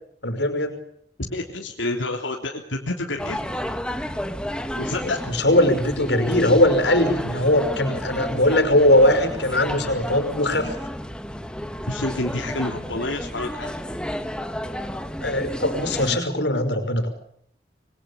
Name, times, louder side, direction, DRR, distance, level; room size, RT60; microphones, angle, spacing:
voice 1, 0.2-0.8 5.3-10.8 15.2-17.1, left 1 dB, 70° left, 9 dB, 5.7 m, -20 dB
voice 2, 1.2-3.4 4.8-5.2 11.9-13.7, left 2 dB, 90° left, 0 dB, 3.5 m, -28 dB
sound 1, 3.2-16.2, equal, 5° left, 1.7 m, -31 dB
26.5 x 24.0 x 8.6 m, 0.68 s
head